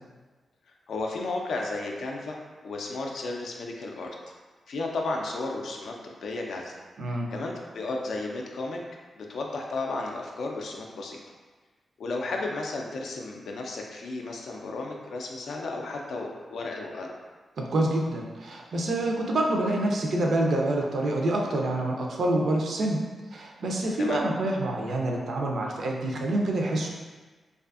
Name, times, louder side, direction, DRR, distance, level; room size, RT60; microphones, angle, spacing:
voice 1, 0.9-4.2 4.7-6.8 7.1-8.8 9.2-11.2 12.0-17.1 24.0-24.2, left 2 dB, 80° left, 1 dB, 0.3 m, -33 dB
voice 2, 7.0-7.3 17.6-23.0 23.3-26.9, right 1 dB, 70° right, 0 dB, 0.4 m, -27 dB
2.5 x 2.4 x 2.3 m, 1.3 s
cardioid pair, 80°, 0 cm